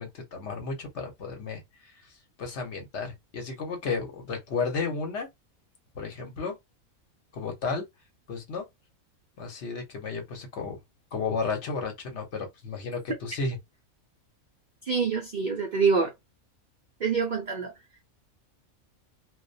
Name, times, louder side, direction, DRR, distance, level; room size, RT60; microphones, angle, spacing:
voice 1, 0.0-1.6 2.4-5.3 5.9-6.5 7.3-7.8 8.3-8.7 9.4-10.8 11.1-13.6, left 4 dB, 55° left, 1.1 m, -33 dB
voice 2, 14.8-16.1 17.0-17.7, right 5 dB, 65° right, 0.4 m, -26 dB
2.5 x 2.0 x 2.5 m
omnidirectional pair, 1.5 m